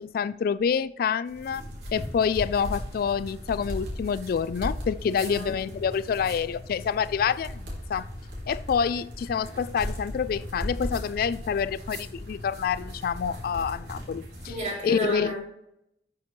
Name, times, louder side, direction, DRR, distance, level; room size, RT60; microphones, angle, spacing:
voice 1, 0.0-1.6 1.9-8.1 8.5-14.5 14.8-15.4, left 7 dB, 55° left, 0.3 m, -27 dB
sound 1, 1.3-14.7, left 1 dB, 75° right, 3.4 m, -37 dB
voice 2, 5.1-5.5 14.4-15.4, equal, 45° right, 3.9 m, -33 dB
12.0 x 6.5 x 3.1 m
head